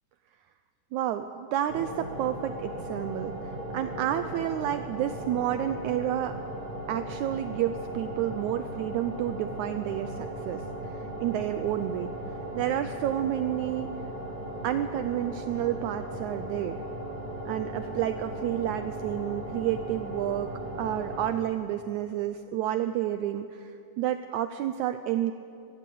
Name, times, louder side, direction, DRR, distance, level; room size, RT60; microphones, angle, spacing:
voice 1, 0.9-6.4 6.9-12.1 12.6-13.9 14.6-16.8 17.5-25.3, right 11 dB, 80° right, 10 dB, 1.8 m, -30 dB
sound 1, 1.7-21.3, right 1 dB, 15° right, 2.2 m, -37 dB
22.5 x 14.5 x 8.5 m, 2.6 s
omnidirectional pair, 3.8 m